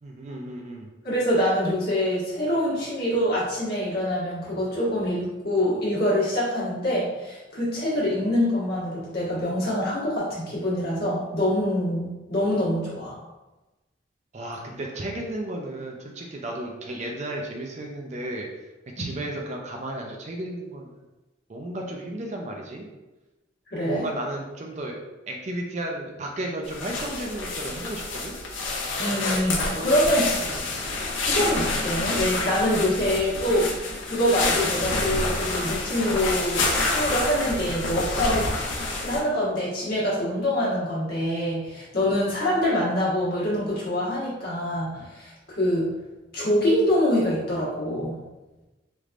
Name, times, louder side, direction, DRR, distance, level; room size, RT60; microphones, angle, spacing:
voice 1, 0.0-0.9 14.3-18.5 19.0-21.0 21.5-22.9 23.7-25.0 25.3-28.4 29.7-30.1 30.4-30.7, right 1 dB, 35° right, 0 dB, 0.5 m, -34 dB
voice 2, 1.0-13.2 19.0-19.1 23.7-24.1 29.0-30.3 31.3-38.5 39.0-45.9 46.3-48.2, equal, 55° left, -7 dB, 1.4 m, -25 dB
sound 1, 26.6-39.2, left 2 dB, 85° left, 0.6 m, -28 dB
3.4 x 3.1 x 2.4 m, 1.1 s
head